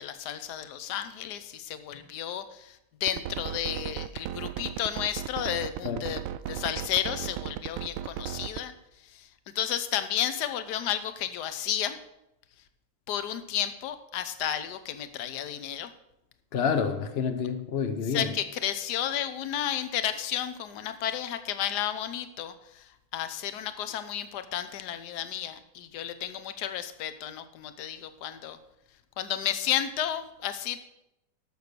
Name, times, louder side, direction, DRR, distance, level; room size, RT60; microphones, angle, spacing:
voice 1, 0.0-8.7 9.1-9.3 9.5-12.0 13.1-15.9 18.1-22.8 23.1-28.6 29.2-30.8, left 10 dB, 60° left, 1.2 m, -32 dB
sound 1, 3.1-8.6, right 12 dB, 85° right, 1.4 m, -35 dB
voice 2, 16.5-18.3, left 6 dB, 85° left, 0.5 m, -28 dB
12.0 x 6.4 x 6.7 m
omnidirectional pair, 2.3 m